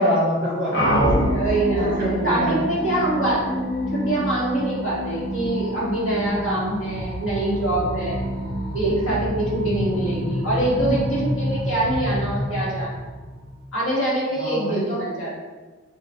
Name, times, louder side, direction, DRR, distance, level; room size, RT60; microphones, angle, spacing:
voice 1, 0.0-1.2 1.8-2.5 14.3-15.0, equal, 45° right, -6 dB, 1.3 m, -24 dB
sound 1, 0.7-13.6, equal, 60° left, 0.8 m, -27 dB
voice 2, 1.3-1.9 2.2-8.2 8.7-12.9 13.7-15.4, right 1 dB, 90° left, -7 dB, 1.4 m, -24 dB
4.8 x 2.5 x 2.3 m, 1.3 s
head